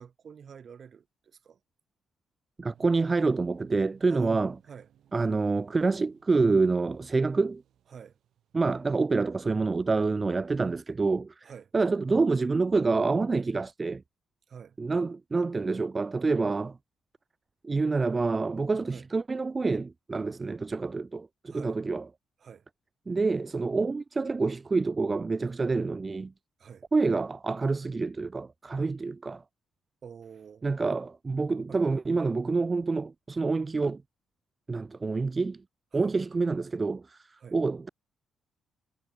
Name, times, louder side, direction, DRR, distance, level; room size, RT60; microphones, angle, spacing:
voice 1, 0.0-1.6 4.1-4.9 7.9-8.2 11.4-11.7 14.5-14.8 18.9-19.1 21.5-21.8 22.4-22.7 26.6-26.9 30.0-30.7 31.7-31.8 35.9-36.1 37.4-37.6, right 7 dB, 50° right, 2.2 m, -47 dB
voice 2, 2.6-4.5 5.1-7.6 8.5-14.0 14.8-16.8 17.6-22.1 23.1-26.3 26.9-29.4 30.6-34.0 34.7-35.6 35.9-37.9, right 3 dB, 25° right, 0.5 m, -27 dB
sound 1, 2.7-9.6, right 10 dB, 70° right, 7.7 m, -62 dB
cardioid pair, 90°, 0 cm